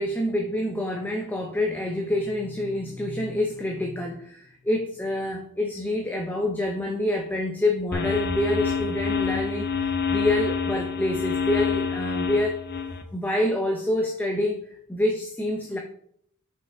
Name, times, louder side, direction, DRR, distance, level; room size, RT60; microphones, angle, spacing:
voice 1, 0.0-12.6 13.1-14.6 14.9-15.8, left 1 dB, 10° left, 2 dB, 0.6 m, -27 dB
sound 1, 7.9-13.0, left 5 dB, 45° left, 0.8 m, -27 dB
5.8 x 5.7 x 3.5 m, 0.66 s
head